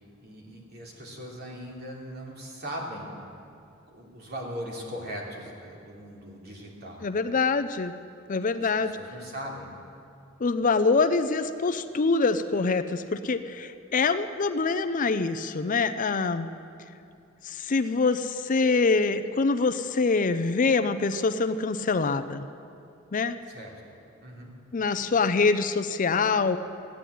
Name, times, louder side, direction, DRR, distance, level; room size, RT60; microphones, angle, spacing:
voice 1, 0.2-3.1 3.9-7.1 8.8-9.7 23.5-23.7 24.2-24.5, equal, 50° right, -2 dB, 3.1 m, -39 dB
voice 2, 7.0-7.9 8.3-9.0 10.4-16.5 17.4-22.4 23.1-23.3 24.7-26.6, left 4 dB, 40° left, 10 dB, 0.5 m, -25 dB
15.5 x 10.0 x 9.3 m, 2.6 s
head